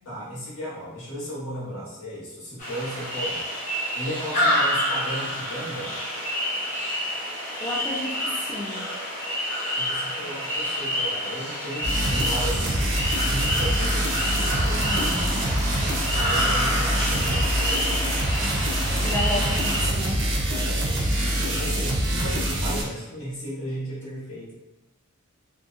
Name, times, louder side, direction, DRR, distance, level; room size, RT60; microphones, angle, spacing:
voice 1, 0.0-3.5 3.9-5.9 9.7-12.8 13.2-15.2 16.1-18.1 20.4-21.0 21.4-24.5, equal, 80° left, -6 dB, 0.9 m, -35 dB
sound 1, 2.6-19.9, equal, 35° left, 0.7 m, -28 dB
voice 2, 7.6-8.9 14.8-15.2 19.0-20.2, left 1 dB, 10° left, -4 dB, 0.4 m, -32 dB
sound 2, 11.8-22.8, right 1 dB, 55° right, 0.5 m, -25 dB
2.6 x 2.0 x 2.4 m, 0.99 s
head